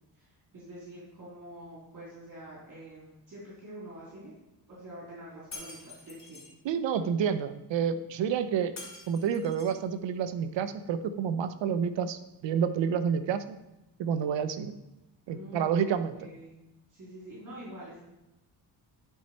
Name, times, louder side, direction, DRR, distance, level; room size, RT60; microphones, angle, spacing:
voice 1, 0.5-4.3 4.7-6.5 15.3-16.5 16.9-18.0, right 1 dB, 45° right, -7 dB, 3.0 m, -46 dB
Shatter, 5.5-6.5 8.8-9.8, left 3 dB, 40° left, 2.9 m, -46 dB
voice 2, 6.6-8.7 9.1-13.6 14.0-14.8 15.3-16.2, right 7 dB, 80° right, 11 dB, 0.7 m, -29 dB
10.5 x 4.7 x 4.3 m, 0.96 s
cardioid pair, 120°, 44 cm